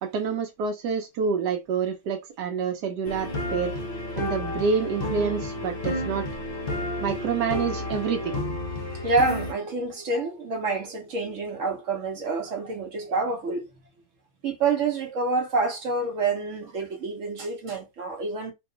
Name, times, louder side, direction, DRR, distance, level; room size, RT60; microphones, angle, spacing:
voice 1, 0.0-3.7 4.2-6.3 7.0-8.4, right 6 dB, 80° right, 1.1 m, -27 dB
sound 1, 3.0-9.5, left 1 dB, 50° left, 0.6 m, -31 dB
voice 2, 9.0-13.7 14.4-18.5, right 3 dB, 60° right, 1.0 m, -27 dB
2.9 x 2.3 x 3.7 m
omnidirectional pair, 1.8 m